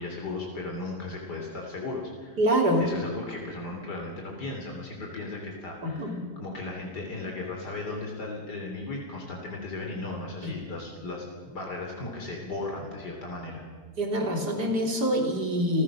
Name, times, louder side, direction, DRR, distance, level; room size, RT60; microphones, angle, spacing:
voice 1, 0.0-2.4 2.8-13.6, left 2 dB, 90° left, 0 dB, 4.0 m, -36 dB
voice 2, 2.4-2.8 5.8-6.2 10.4-10.5 14.0-15.8, equal, 75° right, 2 dB, 3.7 m, -25 dB
28.5 x 15.0 x 6.3 m, 1.5 s
omnidirectional pair, 1.7 m